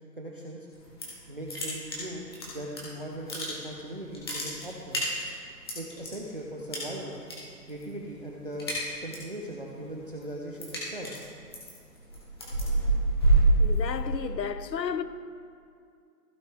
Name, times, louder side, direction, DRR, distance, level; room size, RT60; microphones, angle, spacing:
voice 1, 0.2-0.7 1.3-5.0 5.7-7.2 7.7-8.7 9.0-11.1, right 1 dB, 35° right, 0.7 m, -39 dB
sound 1, 0.7-1.2 1.5-2.8 3.1-3.8 4.1-6.1 6.7-7.3 7.6-8.0 8.3-9.3 9.7-14.2, right 2 dB, 15° left, 1.2 m, -27 dB
voice 2, 13.6-15.0, left 7 dB, 85° left, 0.9 m, -32 dB
15.5 x 6.1 x 3.4 m
hypercardioid pair, 175°, 49 cm